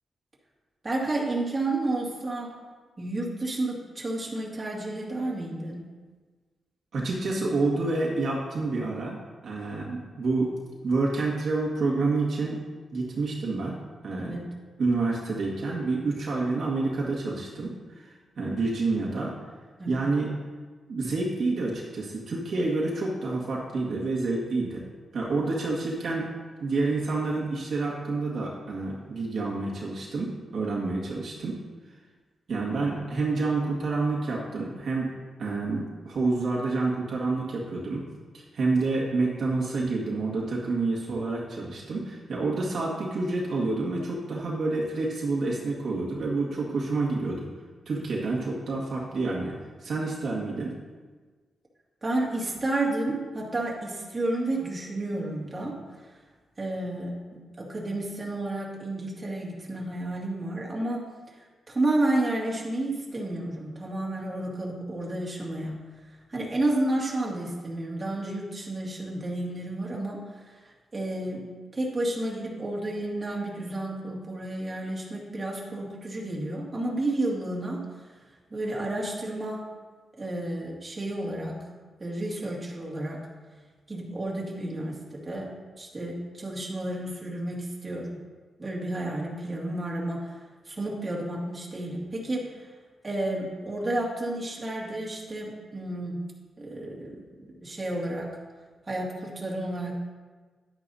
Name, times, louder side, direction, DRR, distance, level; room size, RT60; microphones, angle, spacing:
voice 1, 0.8-2.6 3.0-5.8 14.2-14.4 19.8-20.0 52.0-55.8 56.6-61.0 61.7-65.8 66.3-70.2 70.9-71.5 71.7-77.8 78.5-79.7 80.2-81.6 82.0-83.2 83.9-88.2 88.6-90.3 90.7-92.6 93.0-96.2 96.6-97.2 97.6-98.3 98.9-99.9, right 1 dB, 25° right, -3 dB, 2.2 m, -31 dB
voice 2, 6.9-9.2 9.4-10.6 10.8-12.6 12.9-13.8 14.0-14.4 14.8-19.3 19.9-20.3 20.9-24.9 25.1-26.3 26.6-31.6 32.5-35.1 35.4-38.0 38.3-47.5 47.9-50.7, right 3 dB, 65° right, -4 dB, 1.8 m, -28 dB
11.0 x 9.6 x 2.8 m, 1.4 s
wide cardioid pair, 115°, 0 cm